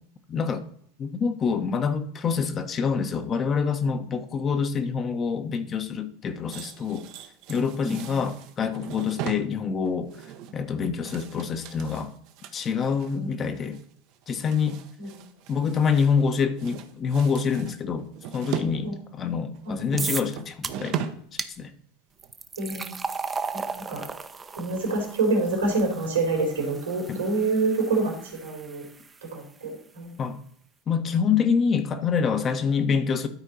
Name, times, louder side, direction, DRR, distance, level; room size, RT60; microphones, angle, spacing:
voice 1, 0.3-0.6 1.0-7.0 7.5-10.1 10.5-12.1 12.5-13.8 14.3-14.8 15.5-18.1 18.3-21.0 21.6-21.7 27.1-27.2 30.2-30.4 30.9-33.3, left 6 dB, 35° left, 8 dB, 1.0 m, -26 dB
sound 1, 6.5-13.2 13.6-13.8 14.1-16.3 16.6-18.7 19.1-21.4 21.6-21.8 22.2-22.3, right 9 dB, 55° right, 0.9 m, -38 dB
voice 2, 7.8-8.2 13.1-13.5 15.0-15.2 18.8-18.9 19.6-19.8 22.6-22.9 23.5-24.1 24.5-28.8 29.2-30.2, right 3 dB, 80° right, 1 dB, 3.2 m, -27 dB
sound 2, 20.0-20.3 20.6-21.0 21.4-21.5 22.2-29.3, right 4 dB, 20° right, 0.7 m, -36 dB
12.5 x 4.5 x 4.1 m, 0.66 s
hypercardioid pair, 80°, 0 cm